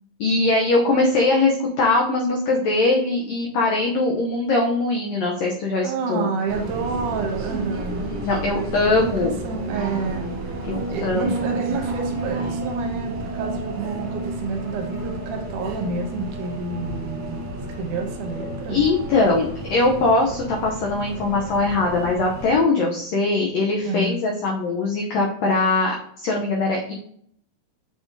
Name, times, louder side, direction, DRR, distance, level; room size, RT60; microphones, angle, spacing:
voice 1, 0.2-6.3 8.2-9.3 10.7-11.3 18.7-26.9, left 3 dB, 85° left, 0 dB, 1.5 m, -21 dB
voice 2, 5.8-8.1 8.9-10.4 10.9-17.4 17.8-18.8 23.8-24.2, right 4 dB, 75° right, 3 dB, 2.0 m, -29 dB
sound 1, 6.5-22.6, right 2 dB, 60° right, 1.9 m, -31 dB
7.5 x 5.1 x 2.6 m, 0.67 s
omnidirectional pair, 4.0 m